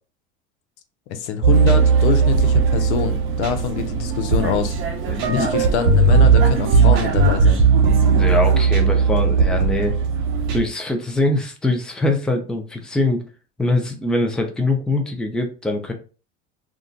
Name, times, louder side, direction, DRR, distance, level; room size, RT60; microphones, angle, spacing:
voice 1, 1.1-4.8 5.3-7.6, left 8 dB, 80° left, 7 dB, 0.6 m, -25 dB
sound 1, 1.4-10.6, right 5 dB, 65° right, 0.8 m, -17 dB
Vehicle, 1.5-10.6, right 5 dB, 35° right, 0.7 m, -30 dB
voice 2, 5.1-5.7 8.1-9.9 10.5-13.2 13.6-15.9, left 2 dB, ahead, 3 dB, 0.5 m, -23 dB
2.4 x 2.2 x 3.8 m, 0.36 s
hypercardioid pair, 90°, 34 cm